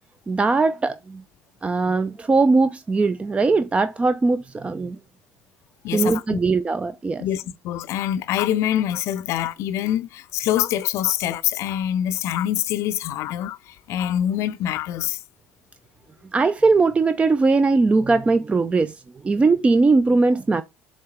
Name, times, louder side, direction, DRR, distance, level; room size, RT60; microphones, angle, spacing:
voice 1, 0.3-1.2 1.6-5.0 5.9-7.2 16.3-18.9 19.2-20.6, right 3 dB, 20° right, 0.4 m, -20 dB
voice 2, 5.8-6.4 7.2-15.2, left 11 dB, 50° left, 0.5 m, -25 dB
7.4 x 3.4 x 4.4 m
figure-of-eight pair, 60°, 6 cm